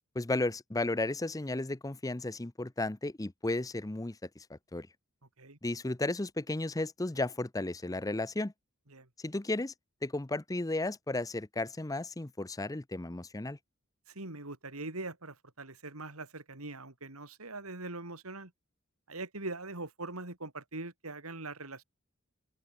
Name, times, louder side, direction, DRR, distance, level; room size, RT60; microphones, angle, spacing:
voice 1, 0.1-4.9 5.6-8.5 9.2-9.7 10.0-13.6, left 2 dB, 15° left, 0.7 m, -34 dB
voice 2, 14.1-18.5 19.1-21.8, right 2 dB, 80° right, 3.7 m, -42 dB
open air
head